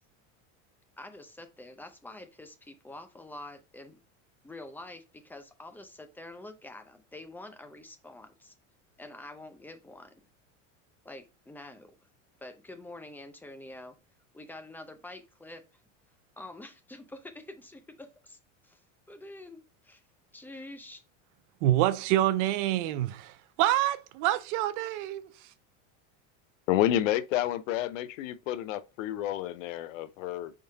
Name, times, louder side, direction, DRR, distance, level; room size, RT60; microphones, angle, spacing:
voice 1, 1.0-4.0 4.4-8.5 9.0-10.3 11.0-11.9 12.4-14.0 14.3-15.6 16.4-18.8 19.1-20.0 20.3-21.0, left 2 dB, 5° left, 0.5 m, -46 dB
voice 2, 21.6-25.3, right 14 dB, 65° right, 0.7 m, -27 dB
voice 3, 26.7-30.5, left 12 dB, 85° left, 0.6 m, -29 dB
4.6 x 3.7 x 2.7 m
supercardioid pair, 130°, 38 cm